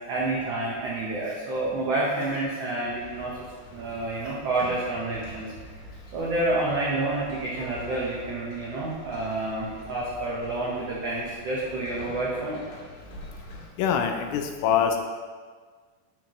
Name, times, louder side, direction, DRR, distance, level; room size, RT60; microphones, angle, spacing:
voice 1, 0.1-3.4 3.7-5.5 6.1-12.6, right 2 dB, 85° right, -5 dB, 1.3 m, -29 dB
sound 1, 2.9-13.7, left 1 dB, 60° left, 2.6 m, -45 dB
voice 2, 13.8-15.0, left 8 dB, 80° left, 5 dB, 2.2 m, -24 dB
12.0 x 4.5 x 3.0 m, 1.5 s
omnidirectional pair, 4.3 m